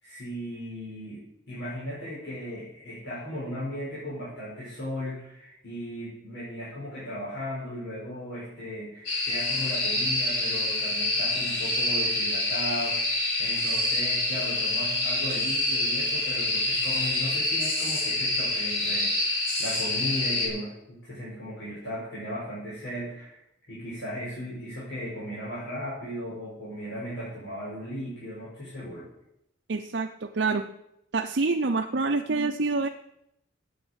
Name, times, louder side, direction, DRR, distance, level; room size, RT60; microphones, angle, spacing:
voice 1, 0.0-23.4 23.7-29.1, equal, 65° left, -9 dB, 5.1 m, -36 dB
sound 1, 9.1-20.5, left 2 dB, 85° left, 4.2 m, -27 dB
voice 2, 29.7-30.7 31.1-32.9, right 3 dB, 60° right, 4 dB, 0.7 m, -26 dB
9.6 x 8.6 x 8.1 m, 0.82 s
head